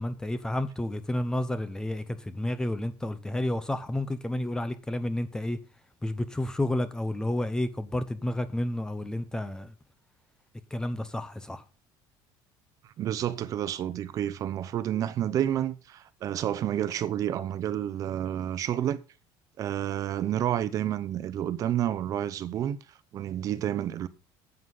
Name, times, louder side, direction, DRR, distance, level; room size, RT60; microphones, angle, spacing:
voice 1, 0.0-5.6 6.0-9.7 10.7-11.6, left 1 dB, 5° left, 0.8 m, -30 dB
voice 2, 13.0-19.0 19.6-22.8 23.1-24.1, right 11 dB, 40° right, 0.8 m, -29 dB
9.6 x 8.2 x 5.6 m
cardioid pair, 160°, 9 cm